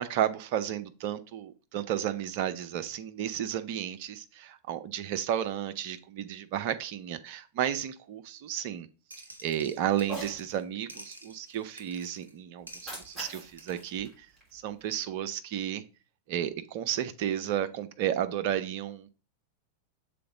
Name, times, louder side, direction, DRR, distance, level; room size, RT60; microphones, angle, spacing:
voice 1, 0.0-8.9 9.4-14.3 14.5-15.8 16.3-19.1, right 10 dB, 45° right, 0.6 m, -32 dB
sound 1, 9.1-10.6 10.9-12.3 12.7-14.0, right 1 dB, 80° right, 0.8 m, -50 dB
Cat, 10.0-10.4 12.6-15.0, right 1 dB, 5° right, 3.4 m, -43 dB
6.8 x 3.8 x 3.8 m
figure-of-eight pair, 90°, 0 cm